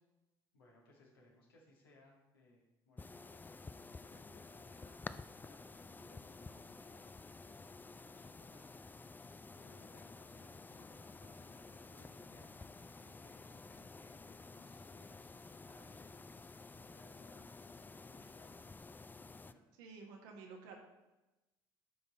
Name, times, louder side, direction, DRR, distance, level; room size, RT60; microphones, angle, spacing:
voice 1, 0.5-8.7 9.5-16.5 16.8-17.8 18.1-18.7 19.4-19.6, left 2 dB, 85° left, -3 dB, 2.2 m, -65 dB
sound 1, 3.0-19.5, left 3 dB, 15° left, 0.4 m, -52 dB
voice 2, 19.8-20.8, right 4 dB, 70° right, 1 dB, 1.6 m, -51 dB
11.0 x 5.4 x 4.2 m, 1.0 s
figure-of-eight pair, 55°, 12 cm